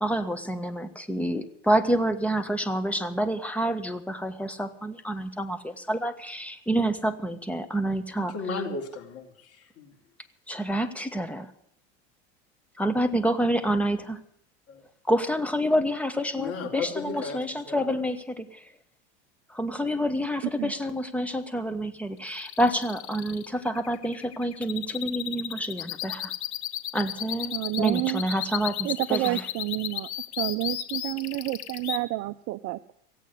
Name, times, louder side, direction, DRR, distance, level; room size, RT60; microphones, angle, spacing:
voice 1, 0.0-8.6 10.5-11.5 12.8-14.2 15.0-18.7 19.5-26.3 26.9-29.5, right 1 dB, 5° left, 9 dB, 1.7 m, -28 dB
voice 2, 8.3-9.9 14.7-14.8 16.4-17.9, left 4 dB, 45° left, 2 dB, 3.8 m, -35 dB
sound 1, 22.2-32.0, left 12 dB, 90° left, 1.4 m, -34 dB
voice 3, 27.5-28.6 28.8-30.1 30.4-32.9, right 21 dB, 50° right, 10 dB, 0.6 m, -30 dB
16.5 x 8.5 x 9.8 m, 0.67 s
supercardioid pair, 105°, 32 cm